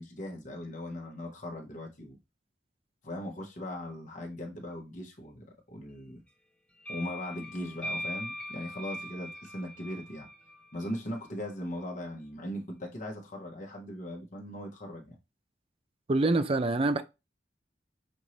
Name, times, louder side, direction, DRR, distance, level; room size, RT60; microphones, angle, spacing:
voice 1, 0.0-2.2 3.0-6.2 6.9-10.3 10.7-15.1, left 1 dB, 45° left, 1.1 m, -39 dB
sound 1, 6.8-11.3, left 1 dB, 5° left, 0.7 m, -41 dB
voice 2, 16.1-17.0, right 2 dB, 30° right, 0.5 m, -25 dB
5.3 x 2.7 x 3.1 m
head